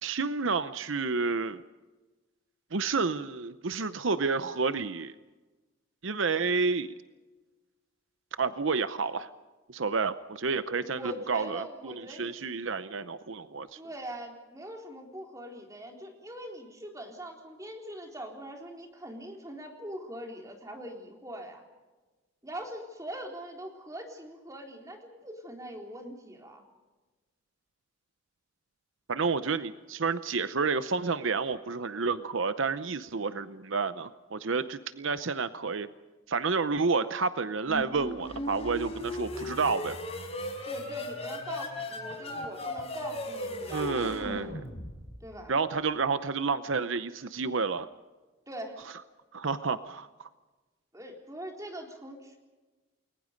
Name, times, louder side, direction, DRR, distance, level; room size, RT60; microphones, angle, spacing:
voice 1, 0.0-1.6 2.7-5.1 6.0-6.9 8.4-9.3 9.7-13.8 29.1-35.9 36.3-40.0 43.7-44.6 45.5-47.9 49.3-50.3, right 4 dB, 70° right, 12 dB, 0.8 m, -30 dB
voice 2, 10.7-12.4 13.8-21.6 22.4-26.6 40.6-44.5 45.2-45.5 48.5-48.8 50.9-52.4, equal, 15° right, 2 dB, 3.9 m, -42 dB
sound 1, 37.7-45.3, left 1 dB, 30° left, 4.9 m, -37 dB
30.0 x 21.0 x 5.2 m, 1.2 s
head